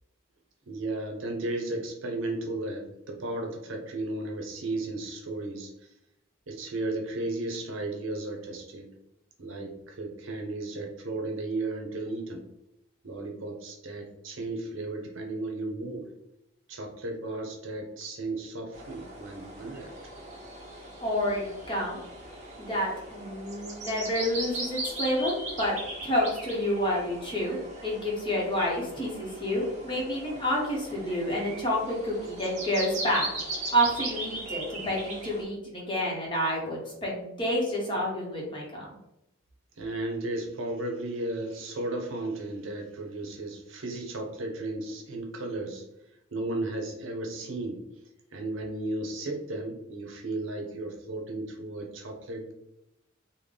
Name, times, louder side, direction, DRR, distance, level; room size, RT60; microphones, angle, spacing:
voice 1, 0.7-5.7 6.5-8.9 9.4-12.4 13.0-16.1 16.7-19.9 39.8-45.8 46.3-47.8 48.3-52.5, right 2 dB, 70° right, 2 dB, 0.7 m, -34 dB
sound 1, 18.7-35.4, right 2 dB, 35° right, 0.9 m, -39 dB
voice 2, 21.0-22.0 22.6-25.8 26.0-39.0, equal, 25° left, -3 dB, 0.9 m, -29 dB
3.7 x 2.2 x 3.3 m, 0.85 s
head